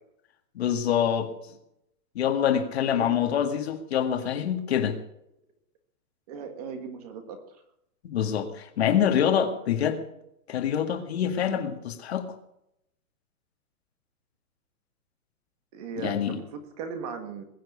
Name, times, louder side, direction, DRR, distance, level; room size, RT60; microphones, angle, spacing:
voice 1, 0.6-1.3 2.2-5.0 8.0-10.0 10.5-12.3 16.0-16.4, left 9 dB, 45° left, 7 dB, 2.0 m, -25 dB
voice 2, 2.8-3.2 6.3-7.6 15.7-17.4, right 6 dB, 25° right, 7 dB, 1.8 m, -38 dB
21.0 x 7.7 x 8.3 m, 0.79 s
hypercardioid pair, 170°, 44 cm